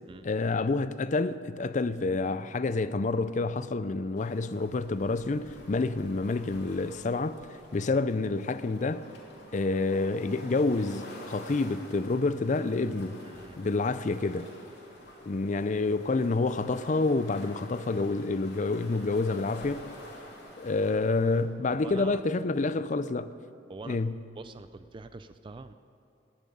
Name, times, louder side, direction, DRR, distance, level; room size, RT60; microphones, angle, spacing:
voice 1, 0.2-7.4 7.7-9.0 9.5-13.2 13.6-14.5 15.3-19.9 20.6-23.3 23.9-24.1, left 3 dB, 40° left, 0.5 m, -28 dB
sound 1, 4.1-21.4, left 1 dB, 60° left, 2.8 m, -49 dB
voice 2, 13.2-13.6 21.7-22.2 23.7-24.0 24.3-25.7, right 3 dB, 25° right, 0.3 m, -44 dB
17.0 x 11.0 x 5.4 m
head